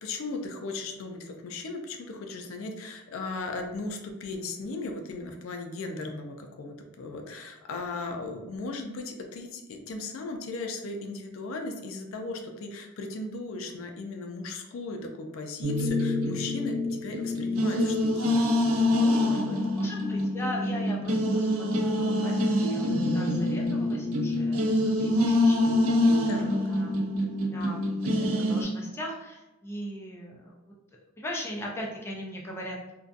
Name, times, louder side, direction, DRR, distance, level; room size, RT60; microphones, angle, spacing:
voice 1, 0.0-18.4 18.8-19.8 26.3-26.6, left 3 dB, 80° left, 3 dB, 0.4 m, -37 dB
sound 1, 15.6-28.6, left 1 dB, 90° right, 0.4 m, -25 dB
voice 2, 19.8-22.9 23.1-27.0 27.4-30.7 31.2-32.9, equal, 10° left, -2 dB, 0.3 m, -39 dB
2.6 x 2.2 x 2.4 m, 1.0 s
head